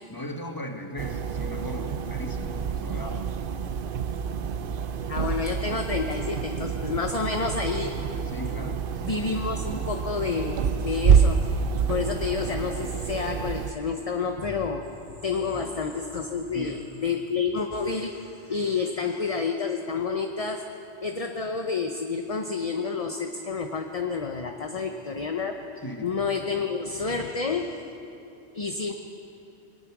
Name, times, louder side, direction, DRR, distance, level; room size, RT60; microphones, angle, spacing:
voice 1, 0.1-3.3 8.3-8.9 15.5-15.8 16.5-16.8 25.8-26.1, left 1 dB, 20° left, 4 dB, 1.4 m, -37 dB
sound 1, 1.0-13.7, right 6 dB, 55° right, 0.8 m, -27 dB
voice 2, 5.1-7.9 9.0-11.5 11.9-14.8 15.2-20.6 21.0-25.6 26.0-27.8 28.5-28.9, left 5 dB, 35° left, 4 dB, 0.9 m, -29 dB
22.5 x 19.5 x 6.1 m, 2.9 s
omnidirectional pair, 1.2 m